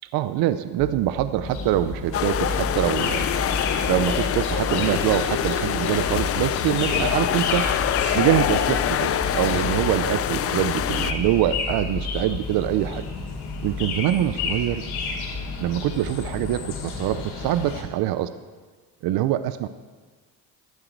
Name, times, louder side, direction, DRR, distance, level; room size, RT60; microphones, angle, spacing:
voice 1, 0.1-3.3 3.9-7.7 8.1-13.0 13.6-14.8 15.6-18.3 19.0-19.7, right 13 dB, 65° right, 13 dB, 0.6 m, -24 dB
sound 1, 0.8-17.5, left 1 dB, ahead, 1.2 m, -35 dB
sound 2, 1.4-17.8, left 5 dB, 75° left, 3.1 m, -33 dB
sound 3, 2.1-11.1, left 10 dB, 35° left, 0.5 m, -25 dB
14.5 x 12.0 x 4.6 m, 1.5 s
cardioid pair, 110°, 39 cm